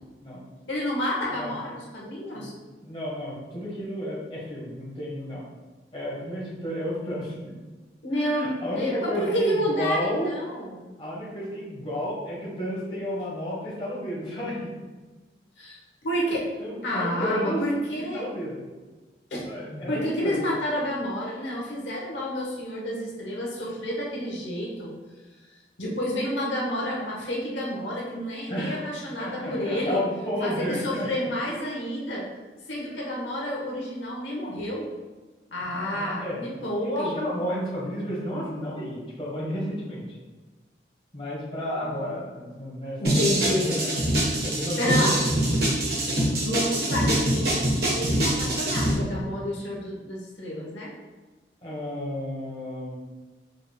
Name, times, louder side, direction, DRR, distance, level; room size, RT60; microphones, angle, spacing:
voice 1, 0.7-2.5 8.0-10.9 15.6-16.5 16.8-18.2 19.3-24.9 25.8-30.0 30.4-32.3 32.7-34.9 35.5-37.2 43.0-43.7 44.8-45.2 46.4-47.7 47.9-50.9, equal, 90° left, -3 dB, 0.9 m, -29 dB
voice 2, 2.8-5.4 5.9-7.4 8.1-10.3 11.0-14.7 16.3-17.6 18.0-18.6 19.4-20.5 28.5-28.8 29.2-31.3 35.6-40.0 41.1-43.2 43.4-43.9 44.4-45.3 46.1-46.2 46.8-47.1 51.6-53.0, equal, 30° left, -6 dB, 1.2 m, -32 dB
sound 1, 43.0-48.9, right 1 dB, 60° right, 1.2 m, -24 dB
5.1 x 3.4 x 2.3 m, 1.3 s
head